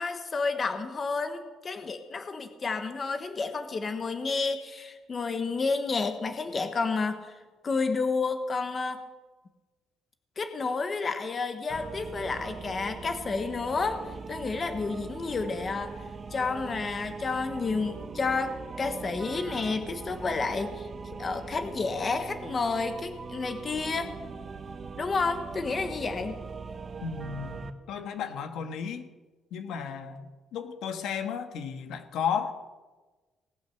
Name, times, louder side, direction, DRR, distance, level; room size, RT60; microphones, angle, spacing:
voice 1, 0.0-7.4 7.6-9.0 10.4-14.0 14.3-15.9 16.3-24.1 25.0-26.4, left 4 dB, 25° left, 8 dB, 1.1 m, -30 dB
sound 1, 11.7-27.7, right 4 dB, 25° right, 0.8 m, -41 dB
voice 2, 27.0-29.1 29.5-32.5, left 7 dB, 70° left, 7 dB, 1.5 m, -34 dB
19.0 x 9.1 x 6.9 m, 1.3 s
cardioid pair, 180°, 0 cm